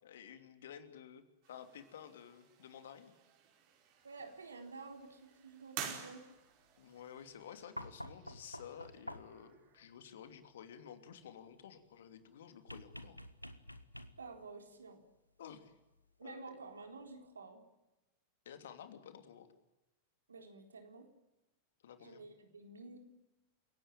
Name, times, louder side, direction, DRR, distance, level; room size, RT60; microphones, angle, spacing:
voice 1, 0.0-3.1 6.8-13.2 15.4-15.7 16.2-16.6 18.4-19.5 21.8-22.2, left 8 dB, 60° left, 8 dB, 2.9 m, -52 dB
sound 1, 1.4-9.9, right 8 dB, 45° right, 5.2 m, -52 dB
voice 2, 4.0-6.3 14.2-15.0 16.2-17.6 20.3-21.1 22.0-23.0, right 4 dB, 75° right, 5 dB, 4.1 m, -51 dB
sound 2, 7.8-9.5 12.7-14.4 16.0-16.1, equal, 90° left, 1.4 m, -49 dB
30.0 x 17.5 x 8.9 m, 0.96 s
figure-of-eight pair, 90°, 0 cm